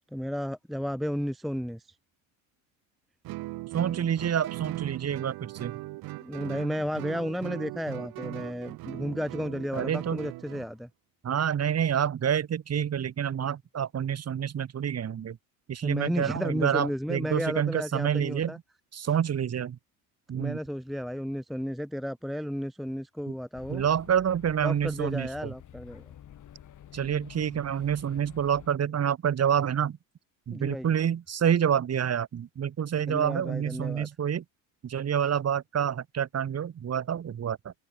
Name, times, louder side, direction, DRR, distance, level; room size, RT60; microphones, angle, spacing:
voice 1, 0.1-1.8 6.2-10.9 15.8-18.6 20.3-23.8 24.6-26.0 30.5-30.9 33.1-34.1, equal, ahead, 0.7 m, -33 dB
Guitar, 3.2-10.7, right 20 dB, 60° right, 1.2 m, -39 dB
voice 2, 3.7-5.8 9.7-10.2 11.2-15.4 15.7-18.5 18.9-19.8 20.3-20.6 23.3-23.4 23.7-25.5 26.9-30.0 30.5-34.4 34.8-37.7, right 8 dB, 35° right, 3.1 m, -28 dB
sound 1, 23.5-28.7, left 10 dB, 45° left, 6.0 m, -50 dB
open air
supercardioid pair, 90°, 42 cm